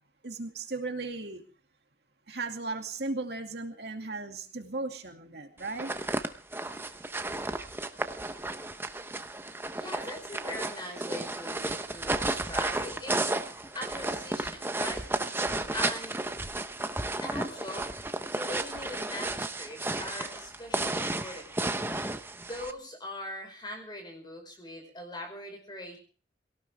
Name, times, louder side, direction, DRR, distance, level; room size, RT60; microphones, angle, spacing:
voice 1, 0.2-1.4 2.3-5.9, right 3 dB, 65° right, 5 dB, 2.4 m, -36 dB
sound 1, 5.6-22.7, right 2 dB, 15° right, 1.0 m, -33 dB
voice 2, 9.7-15.4 15.7-16.2 17.2-21.9 22.4-26.0, left 1 dB, 25° left, 4 dB, 5.2 m, -42 dB
23.0 x 18.0 x 3.5 m, 0.39 s
head